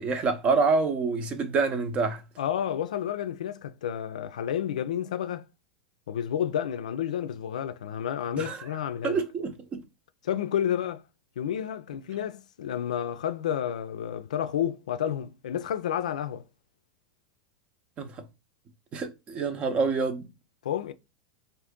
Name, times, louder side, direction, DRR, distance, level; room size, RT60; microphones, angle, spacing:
voice 1, 0.0-2.2 8.4-8.6 9.0-9.8 18.0-18.2 18.9-20.3, right 4 dB, 30° right, 0.6 m, -27 dB
voice 2, 2.4-5.5 6.1-9.2 10.2-11.0 11.4-16.4 20.6-20.9, left 9 dB, 85° left, 0.4 m, -30 dB
2.6 x 2.6 x 3.5 m
hypercardioid pair, 120°, 4 cm